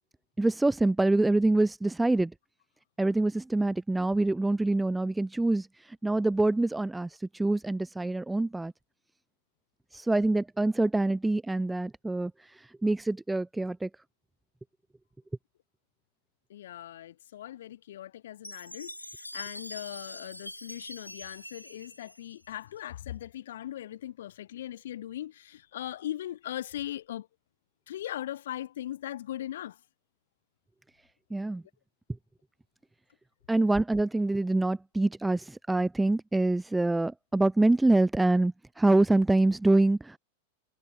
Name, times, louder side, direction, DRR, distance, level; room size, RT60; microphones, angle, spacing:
voice 1, 0.4-2.3 3.0-8.7 9.9-12.3 12.6-13.9 31.3-31.6 33.5-40.2, right 2 dB, 5° right, 1.1 m, -25 dB
voice 2, 16.5-27.3 27.9-29.8, left 12 dB, 60° left, 1.2 m, -39 dB
Chime, 18.4-22.8, left 1 dB, 90° left, 2.9 m, -44 dB
figure-of-eight pair, 90°, 0 cm